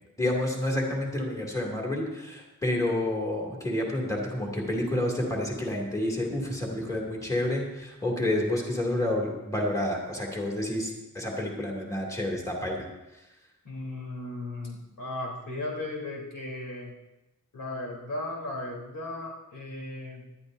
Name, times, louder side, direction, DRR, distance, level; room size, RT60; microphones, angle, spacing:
voice 1, 0.2-12.9, left 1 dB, 10° left, -2 dB, 2.5 m, -29 dB
voice 2, 13.6-16.9 17.5-20.3, left 2 dB, 85° left, -2 dB, 3.6 m, -36 dB
19.0 x 11.5 x 2.7 m, 1.0 s
wide cardioid pair, 135°, 32 cm